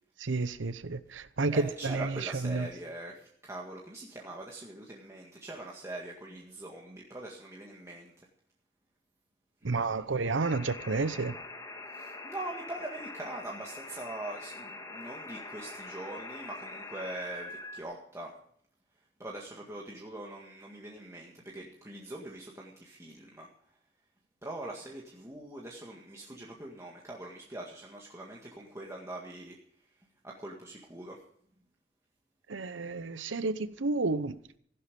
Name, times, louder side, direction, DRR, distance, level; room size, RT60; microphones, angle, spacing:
voice 1, 0.2-2.1 2.4-2.7 9.6-11.4 32.5-34.4, right 3 dB, 85° right, 0.8 m, -31 dB
voice 2, 1.5-8.1 9.6-10.0 11.9-18.3 19.2-23.5 24.4-29.6 30.2-31.2, right 1 dB, 15° right, 1.9 m, -43 dB
sound 1, 10.4-17.8, left 2 dB, 20° left, 1.8 m, -44 dB
16.0 x 11.0 x 5.3 m
head